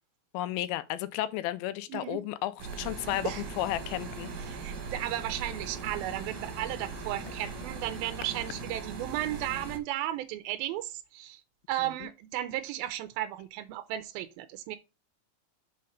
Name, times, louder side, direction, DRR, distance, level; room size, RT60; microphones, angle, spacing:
voice 1, 0.3-4.3, left 14 dB, 85° left, 2.4 m, -33 dB
voice 2, 1.9-2.2 3.2-3.4 4.5-11.4 11.7-14.8, right 13 dB, 85° right, 2.4 m, -34 dB
sound 1, 2.6-9.8, right 4 dB, 65° right, 2.3 m, -40 dB
sound 2, 3.0-8.6, right 2 dB, ahead, 1.3 m, -51 dB
5.6 x 4.2 x 5.1 m
omnidirectional pair, 4.3 m